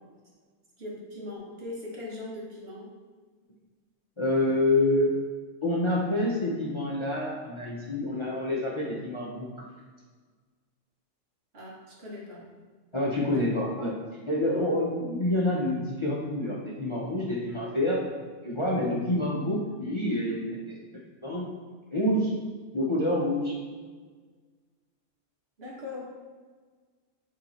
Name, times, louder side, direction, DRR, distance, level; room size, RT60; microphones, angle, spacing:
voice 1, 0.8-2.9 11.5-12.4 13.3-13.5 25.6-26.0, left 2 dB, 55° right, -4 dB, 1.5 m, -40 dB
voice 2, 4.2-5.2 5.6-9.5 12.9-13.9 14.3-18.1 18.4-20.8 21.2-21.5 21.9-22.3 22.7-23.5, left 1 dB, 30° left, -5 dB, 0.7 m, -27 dB
8.0 x 2.9 x 4.2 m, 1.5 s
omnidirectional pair, 1.3 m